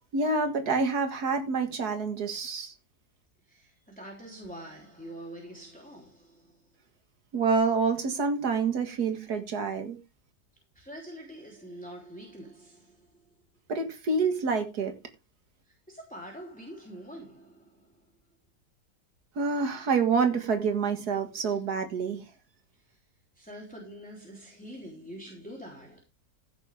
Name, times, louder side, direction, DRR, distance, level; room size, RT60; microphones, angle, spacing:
voice 1, 0.1-2.7 7.3-10.0 13.7-14.9 19.4-22.2, right 4 dB, 85° right, 2.3 m, -27 dB
voice 2, 3.4-6.6 10.7-13.1 15.7-17.9 21.4-21.6 22.9-23.0 23.3-26.0, right 1 dB, 5° left, 3.3 m, -45 dB
16.0 x 8.1 x 3.5 m
omnidirectional pair, 1.6 m